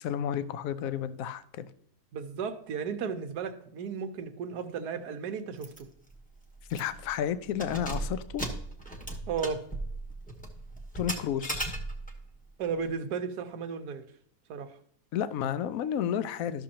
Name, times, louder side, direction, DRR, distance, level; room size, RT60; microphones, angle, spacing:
voice 1, 0.0-1.7 6.7-8.4 10.9-11.8 15.1-16.6, left 9 dB, 70° left, 13 dB, 1.0 m, -32 dB
voice 2, 2.1-5.9 9.3-9.6 12.6-14.1 14.5-14.8, right 6 dB, 90° right, 8 dB, 1.3 m, -34 dB
Keys jangling, 5.6-5.8 6.1-6.2 6.7-7.1 7.5-12.2, right 1 dB, 5° left, 0.8 m, -36 dB
13.0 x 6.3 x 2.8 m, 0.67 s
omnidirectional pair, 1.6 m